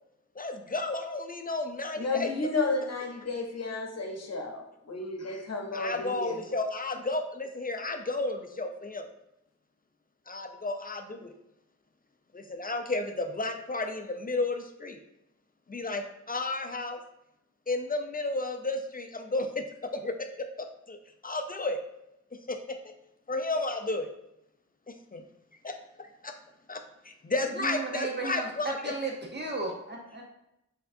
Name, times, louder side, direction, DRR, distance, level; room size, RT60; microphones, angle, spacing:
voice 1, 0.4-2.3 5.7-9.1 10.3-11.3 12.3-15.0 15.7-17.0 17.7-21.0 21.2-21.8 22.5-22.9 23.3-24.1 24.9-25.2 25.6-25.8 26.2-26.3 26.7-28.8, left 2 dB, 30° left, 6 dB, 0.4 m, -33 dB
voice 2, 2.0-6.4, left 3 dB, 60° left, 3 dB, 0.8 m, -32 dB
voice 3, 27.6-30.2, right 3 dB, 35° right, -1 dB, 0.7 m, -34 dB
4.6 x 3.5 x 2.6 m, 0.84 s
wide cardioid pair, 70°, 29 cm